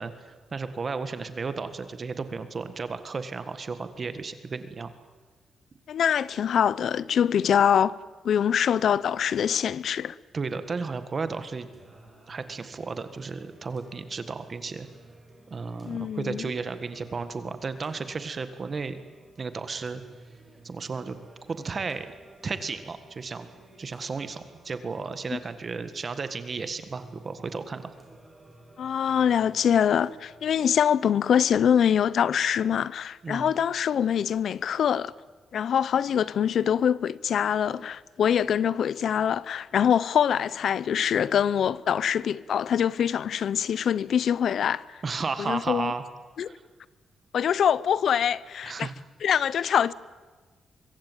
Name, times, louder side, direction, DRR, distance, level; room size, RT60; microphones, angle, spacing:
voice 1, 0.0-4.9 10.3-11.7 12.3-14.9 15.5-19.0 19.4-20.0 20.6-21.2 21.5-22.1 22.4-23.5 23.8-27.9 33.2-33.5 45.0-46.0 46.4-46.6 48.6-48.9, right 4 dB, 30° right, 1.6 m, -33 dB
voice 2, 5.9-7.9 8.2-10.1 15.8-16.5 25.3-25.4 28.8-35.1 35.5-45.0 45.4-45.9 46.4-46.5 47.3-48.9 49.2-49.9, left 8 dB, 55° left, 0.7 m, -24 dB
Singing, 11.7-30.7, right 1 dB, 10° right, 5.0 m, -53 dB
24.5 x 23.5 x 9.2 m
wide cardioid pair, 180°, 0 cm